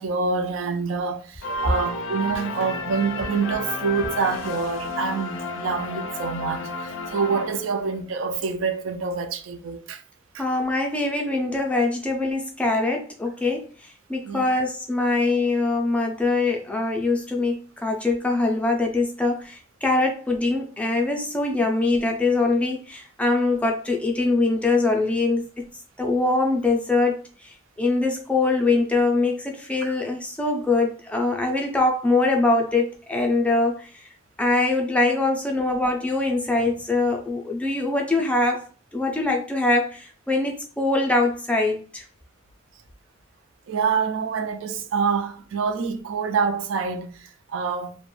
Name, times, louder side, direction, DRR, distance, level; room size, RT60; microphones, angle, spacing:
voice 1, 0.0-10.0 10.3-10.4 14.3-14.5 29.8-29.9 43.7-48.0, right 5 dB, 75° right, 0.3 m, -26 dB
sound 1, 1.4-8.0, left 3 dB, 75° left, 0.4 m, -32 dB
voice 2, 10.4-13.7 14.1-25.4 26.0-27.1 27.4-33.9 34.4-38.6 38.9-42.0, left 2 dB, 5° left, 0.4 m, -23 dB
2.4 x 2.1 x 3.1 m
head